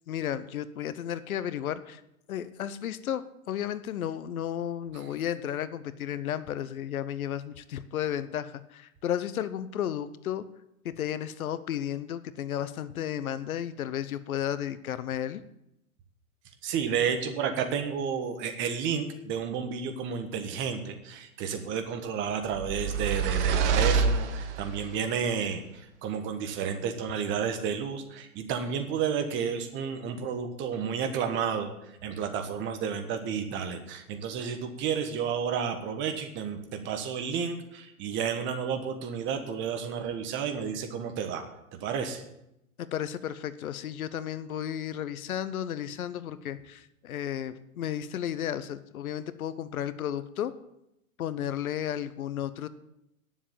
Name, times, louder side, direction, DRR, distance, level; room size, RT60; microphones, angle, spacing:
voice 1, 0.1-2.0 2.3-10.5 10.8-15.4 42.9-50.5 51.2-52.7, left 10 dB, 75° left, 14 dB, 1.0 m, -33 dB
voice 2, 16.6-41.4 41.7-42.3, right 7 dB, 25° right, 7 dB, 1.3 m, -31 dB
sound 1, 22.5-24.9, right 5 dB, 50° right, 1.4 m, -26 dB
9.9 x 7.3 x 8.7 m, 0.83 s
hypercardioid pair, 135°, 43 cm